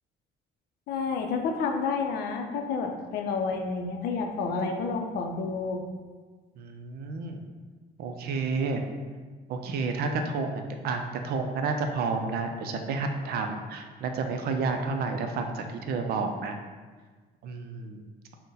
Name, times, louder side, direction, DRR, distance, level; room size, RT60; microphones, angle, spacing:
voice 1, 0.9-5.8, left 4 dB, 70° left, 3 dB, 0.5 m, -30 dB
voice 2, 6.6-7.4 8.0-8.8 9.5-16.6 17.4-18.0, right 4 dB, 65° right, 5 dB, 0.5 m, -30 dB
3.8 x 2.1 x 4.0 m, 1.4 s
cardioid pair, 110°, 17 cm